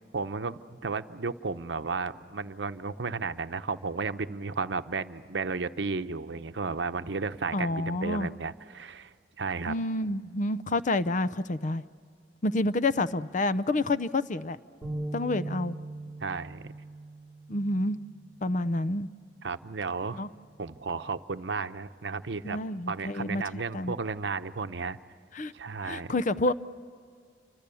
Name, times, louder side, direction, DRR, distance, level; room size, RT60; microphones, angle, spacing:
voice 1, 0.1-9.8 16.2-16.7 19.4-20.3 20.6-22.6 22.9-25.0 25.5-26.1, right 4 dB, 75° right, 10 dB, 0.8 m, -33 dB
voice 2, 7.5-8.3 9.7-11.8 12.4-14.6 15.1-15.8 17.5-18.0 18.4-19.1 20.2-20.3 22.4-23.9 25.4-25.5 25.8-26.5, left 2 dB, 45° left, 14 dB, 0.6 m, -28 dB
sound 1, 14.8-21.1, right 2 dB, 10° left, 4.6 m, -42 dB
29.0 x 25.0 x 7.0 m, 2.1 s
head